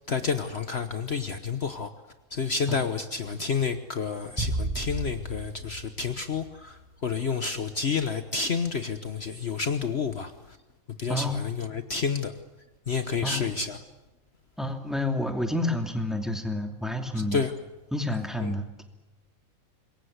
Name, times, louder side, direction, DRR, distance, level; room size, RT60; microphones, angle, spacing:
voice 1, 0.1-1.9 2.3-10.3 11.0-12.3 12.9-13.8 17.3-17.5 18.4-18.5, left 5 dB, 50° left, 9 dB, 1.3 m, -29 dB
sound 1, 4.4-6.9, right 2 dB, 15° right, 7.4 m, -33 dB
voice 2, 14.6-17.4 17.9-18.8, left 1 dB, ahead, 4 dB, 2.7 m, -29 dB
26.5 x 22.5 x 8.1 m, 1.1 s
omnidirectional pair, 1.4 m